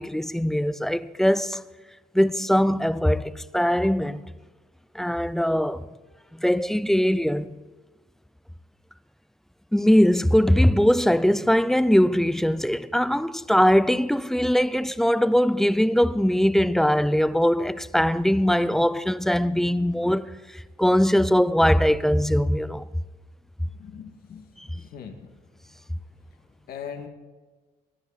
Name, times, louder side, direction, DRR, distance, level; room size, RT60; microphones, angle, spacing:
voice 1, 0.0-1.6 2.1-4.2 4.9-5.9 6.3-7.5 9.7-20.3 20.5-22.9 24.6-24.7, equal, ahead, 0.4 m, -21 dB
voice 2, 23.6-25.3 26.7-27.1, left 7 dB, 65° left, 2.0 m, -40 dB
23.5 x 10.5 x 4.1 m
cardioid pair, 110°, 17 cm